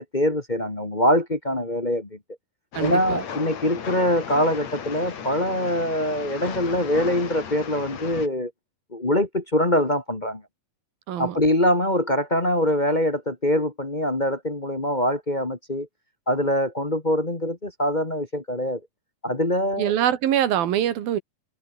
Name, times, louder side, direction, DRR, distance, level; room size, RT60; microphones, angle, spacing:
voice 1, 0.0-2.2 2.8-8.5 8.9-10.4 11.2-15.9 16.3-18.8 19.2-19.9, left 1 dB, 25° left, 1.0 m, -23 dB
Train, 2.7-8.3, left 7 dB, 50° left, 3.6 m, -35 dB
voice 2, 2.7-3.2 11.1-11.4 19.8-21.2, right 11 dB, 80° right, 3.7 m, -24 dB
omnidirectional pair, 4.1 m